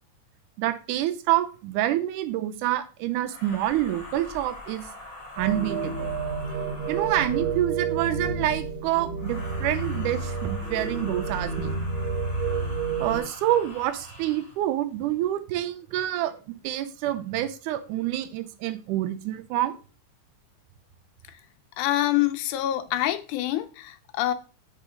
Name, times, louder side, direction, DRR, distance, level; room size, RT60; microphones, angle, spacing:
voice 1, 0.6-4.8 5.4-6.1 6.9-11.7 13.0-19.8, right 13 dB, 80° right, 2.1 m, -27 dB
sound 1, 3.2-7.8 9.1-14.6, left 2 dB, 45° left, 0.4 m, -43 dB
sound 2, 5.4-13.2, right 4 dB, 50° right, 1.6 m, -30 dB
voice 2, 21.8-24.3, left 14 dB, 80° left, 2.0 m, -26 dB
4.6 x 4.2 x 4.9 m
omnidirectional pair, 3.6 m